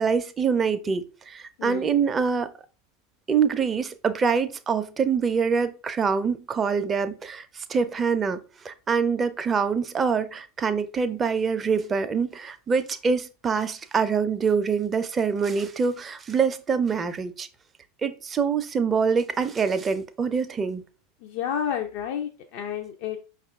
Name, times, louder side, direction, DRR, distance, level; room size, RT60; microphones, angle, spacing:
voice 1, 0.0-2.5 3.3-8.4 8.6-17.5 18.0-20.8, right 6 dB, 25° right, 0.5 m, -25 dB
voice 2, 1.6-2.0 21.2-23.2, left 8 dB, 55° left, 0.5 m, -30 dB
5.3 x 2.4 x 3.4 m
figure-of-eight pair, 80°, 0 cm